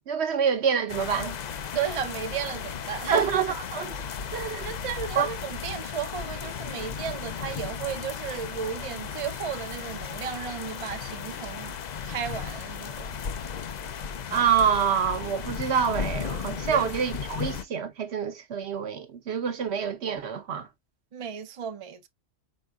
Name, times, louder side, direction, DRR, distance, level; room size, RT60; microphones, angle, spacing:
voice 1, 0.0-1.3 3.1-4.0 4.3-4.7 5.2-5.3 14.3-20.7, right 7 dB, 65° right, 1.0 m, -26 dB
sound 1, 0.9-17.6, left 7 dB, 55° left, 0.4 m, -35 dB
voice 2, 1.7-3.3 4.6-11.7 12.0-13.2 16.7-16.9 17.3-17.4 21.1-22.1, right 8 dB, 40° right, 0.5 m, -34 dB
4.4 x 4.1 x 2.3 m
omnidirectional pair, 1.2 m